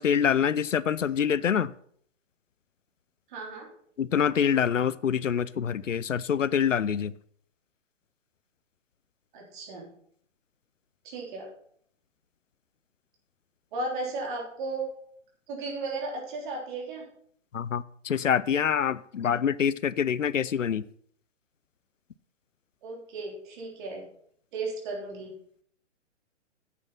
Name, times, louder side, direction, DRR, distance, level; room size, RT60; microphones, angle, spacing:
voice 1, 0.0-1.7 4.0-7.1 17.5-20.8, left 8 dB, 85° left, 19 dB, 0.5 m, -26 dB
voice 2, 3.3-3.7 9.3-9.9 11.0-11.5 13.7-14.9 15.5-17.1 22.8-24.0 24.5-25.3, right 3 dB, 40° right, 0 dB, 3.5 m, -35 dB
8.3 x 7.4 x 5.9 m, 0.63 s
figure-of-eight pair, 120°, 37 cm